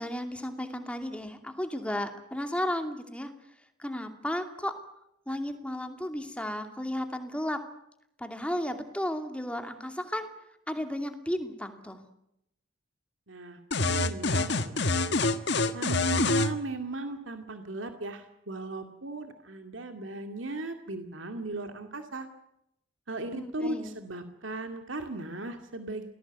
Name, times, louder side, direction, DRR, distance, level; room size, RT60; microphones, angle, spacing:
voice 1, 0.0-3.3 3.8-4.7 5.3-7.6 8.2-10.3 10.7-12.0 23.3-24.0, left 1 dB, 5° left, 6 dB, 2.6 m, -34 dB
voice 2, 13.3-15.1 15.7-22.3 23.1-26.1, right 2 dB, 75° right, 6 dB, 2.3 m, -37 dB
sound 1, 13.7-16.5, left 2 dB, 60° left, 1.6 m, -26 dB
28.0 x 19.0 x 8.2 m, 0.79 s
head